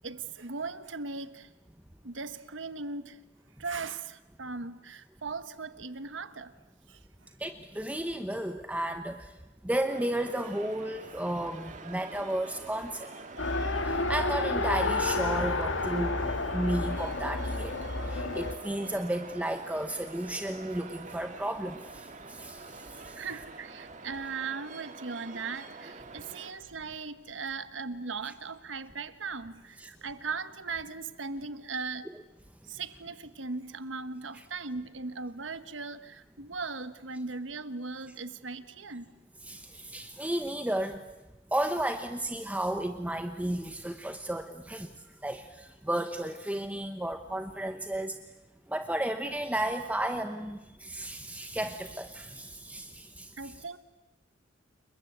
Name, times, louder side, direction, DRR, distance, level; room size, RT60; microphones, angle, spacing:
voice 1, 0.0-1.5 2.0-3.2 3.6-6.5 6.9-7.3 23.2-32.1 32.7-39.1 53.4-53.8, right 4 dB, 75° right, 12 dB, 1.3 m, -38 dB
voice 2, 7.4-9.3 9.6-13.1 13.8-17.8 18.1-22.8 23.1-23.2 29.8-29.9 34.3-34.4 39.4-41.0 41.5-44.9 45.2-48.1 48.7-53.5, right 1 dB, 10° right, 7 dB, 0.9 m, -33 dB
sound 1, 9.9-26.5, right 3 dB, 40° right, 2.1 m, -46 dB
Race car auto racing, 13.4-18.5, left 2 dB, 75° left, 1.8 m, -30 dB
29.0 x 23.0 x 8.2 m, 1.0 s
head